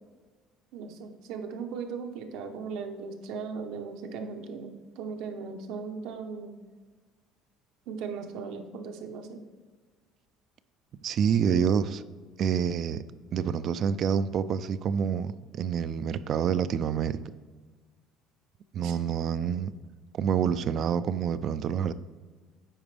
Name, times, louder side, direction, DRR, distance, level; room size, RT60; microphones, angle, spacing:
voice 1, 0.7-6.5 7.9-9.4 18.8-19.0, right 5 dB, 75° right, 0.9 m, -38 dB
voice 2, 11.0-12.0 12.4-13.0 13.3-17.2 18.7-19.7 20.2-21.9, right 7 dB, 45° right, 0.3 m, -27 dB
8.8 x 5.0 x 3.3 m
cardioid pair, 135°, 0 cm